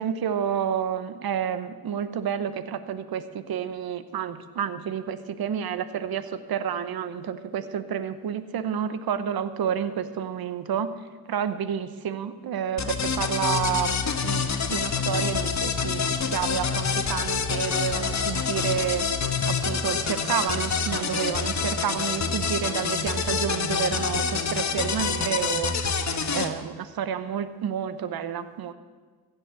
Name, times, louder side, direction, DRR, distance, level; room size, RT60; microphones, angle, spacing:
voice 1, 0.0-10.9 11.3-19.1 19.5-25.7 26.3-28.7, right 8 dB, 75° right, 13 dB, 0.9 m, -30 dB
sound 1, 12.8-26.5, left 5 dB, 50° left, 1.2 m, -27 dB
14.5 x 6.9 x 8.2 m, 1.5 s
cardioid pair, 65°, 37 cm